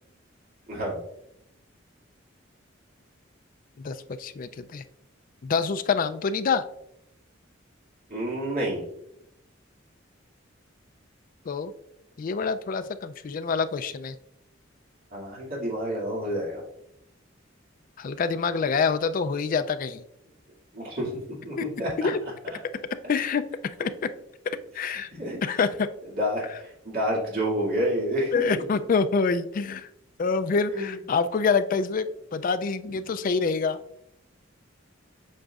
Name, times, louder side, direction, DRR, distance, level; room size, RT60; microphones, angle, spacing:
voice 1, 0.7-1.0 8.1-8.8 15.1-16.6 20.7-21.9 22.4-22.6 24.8-25.4 26.2-28.6 30.7-31.0, equal, 50° right, -4 dB, 2.3 m, -29 dB
voice 2, 3.8-4.8 5.4-6.6 11.5-11.7 12.2-14.2 18.0-20.0 21.6-21.7 22.0-22.2 23.1-23.4 23.8-23.9 24.7-25.1 25.4-25.9 28.3-29.9 30.2-33.8, left 5 dB, 45° left, 10 dB, 0.3 m, -26 dB
7.8 x 5.0 x 2.4 m, 0.79 s
head